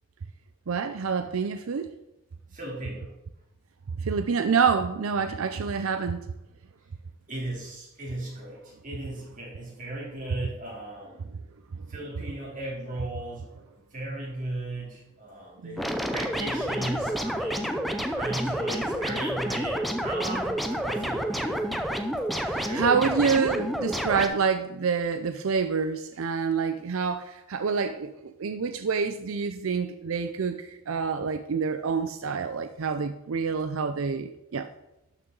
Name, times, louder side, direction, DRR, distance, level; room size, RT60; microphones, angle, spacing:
voice 1, 0.7-1.9 4.0-6.2 15.6-15.8 22.5-28.1 28.4-34.7, right 5 dB, 85° right, 10 dB, 0.5 m, -27 dB
voice 2, 2.5-3.1 7.3-11.3 11.9-13.4 13.9-17.8 18.2-21.8 22.6-23.1, right 1 dB, 40° right, -3 dB, 3.3 m, -36 dB
sound 1, 15.8-24.3, equal, ahead, 0.6 m, -29 dB
12.0 x 6.6 x 3.9 m, 0.95 s
head